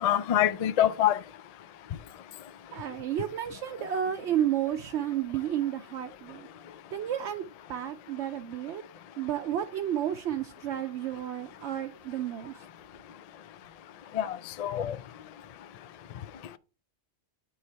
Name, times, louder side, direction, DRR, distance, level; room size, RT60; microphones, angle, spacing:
voice 1, 0.0-1.2 14.1-15.0, left 11 dB, 65° left, 0.4 m, -25 dB
voice 2, 2.7-6.5 6.9-7.4 7.7-8.8 9.2-12.7, right 10 dB, 80° right, 0.9 m, -31 dB
9.6 x 3.2 x 4.5 m
omnidirectional pair, 1.2 m